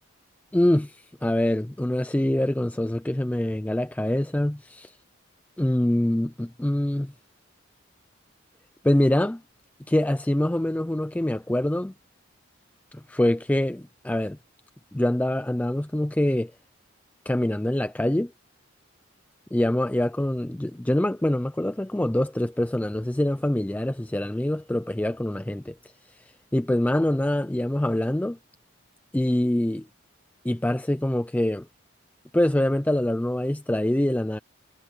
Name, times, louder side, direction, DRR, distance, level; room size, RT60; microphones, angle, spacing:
voice 1, 0.5-5.0 5.6-7.1 8.8-9.4 9.9-11.9 12.9-14.4 14.9-16.5 17.3-18.3 19.5-26.2 26.5-28.4 29.1-29.9 30.4-31.7 32.3-34.4, left 1 dB, 5° left, 0.3 m, -25 dB
head